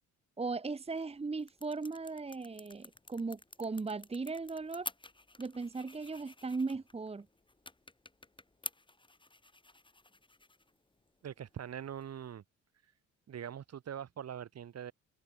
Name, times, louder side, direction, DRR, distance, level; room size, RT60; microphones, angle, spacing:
voice 1, 0.4-4.9 5.4-7.3, right 4 dB, 20° right, 1.2 m, -37 dB
sound 1, 0.8-12.3, left 2 dB, 15° left, 7.2 m, -51 dB
voice 2, 11.2-12.4 13.3-14.9, right 9 dB, 55° right, 2.8 m, -43 dB
cardioid pair, 90°, 30 cm